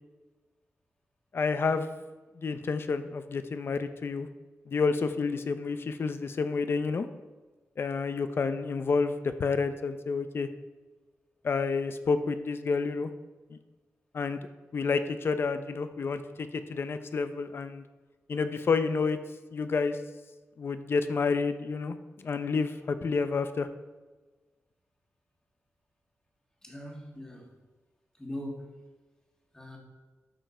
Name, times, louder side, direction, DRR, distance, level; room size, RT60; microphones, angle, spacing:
voice 1, 1.3-2.0 2.4-4.3 4.7-7.1 7.8-10.5 11.4-13.1 14.1-14.4 14.7-17.8 18.3-19.2 19.5-20.0 20.6-21.9 22.2-23.7, left 4 dB, 50° left, 10 dB, 0.6 m, -29 dB
voice 2, 26.6-27.5 28.2-28.8 29.5-29.8, left 1 dB, 10° left, 0 dB, 1.9 m, -40 dB
12.5 x 5.7 x 4.3 m, 1.2 s
wide cardioid pair, 135°, 5 cm